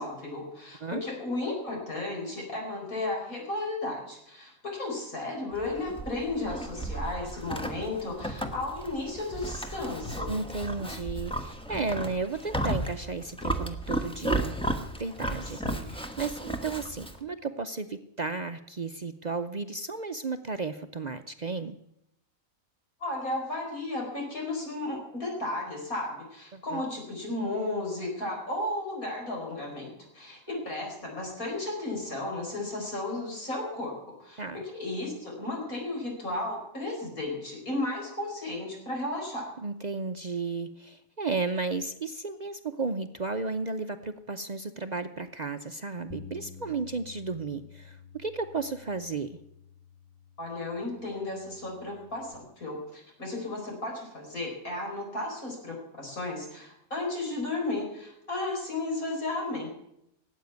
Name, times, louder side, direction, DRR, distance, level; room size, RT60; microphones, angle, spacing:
voice 1, 0.0-10.3 15.6-15.9 23.0-39.5 50.4-59.7, left 2 dB, 90° left, 0 dB, 5.3 m, -34 dB
Livestock farm animals working animals, 5.5-17.2, right 1 dB, 5° left, 1.1 m, -34 dB
voice 2, 10.3-14.6 15.0-21.8 26.5-26.8 30.5-30.6 34.4-34.6 39.6-49.4, right 4 dB, 45° right, 8 dB, 0.6 m, -34 dB
Bass guitar, 46.1-52.3, left 6 dB, 20° left, 0.6 m, -50 dB
18.0 x 8.5 x 9.4 m, 0.80 s
omnidirectional pair, 1.4 m